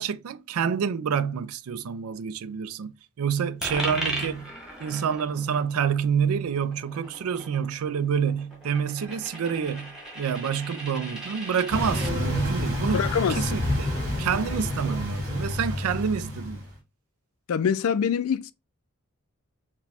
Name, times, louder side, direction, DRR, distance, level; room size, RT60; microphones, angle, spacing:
voice 1, 0.0-2.9 3.2-4.5 4.8-13.0 13.3-13.9 14.2-16.6, right 7 dB, 90° right, 0.4 m, -28 dB
Coin (dropping), 3.6-12.1, right 1 dB, 5° right, 1.1 m, -37 dB
sound 1, 11.7-16.7, left 1 dB, 60° right, 2.2 m, -29 dB
voice 2, 12.9-13.4 17.5-18.5, left 7 dB, 85° left, 0.4 m, -24 dB
4.7 x 2.2 x 3.4 m
head